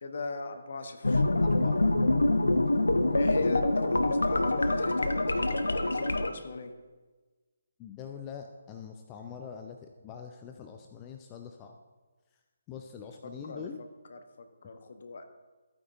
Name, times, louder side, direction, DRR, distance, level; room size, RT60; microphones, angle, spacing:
voice 1, 0.0-1.3 3.1-6.7 13.2-13.7 14.1-15.2, left 3 dB, 50° left, 7 dB, 1.0 m, -39 dB
sound 1, 1.0-6.3, left 2 dB, 75° left, 0.7 m, -25 dB
voice 2, 1.4-1.8 7.8-11.8 12.7-13.8, left 7 dB, 20° left, 4 dB, 0.6 m, -44 dB
14.0 x 9.2 x 2.7 m, 1.3 s
figure-of-eight pair, 140°, 0 cm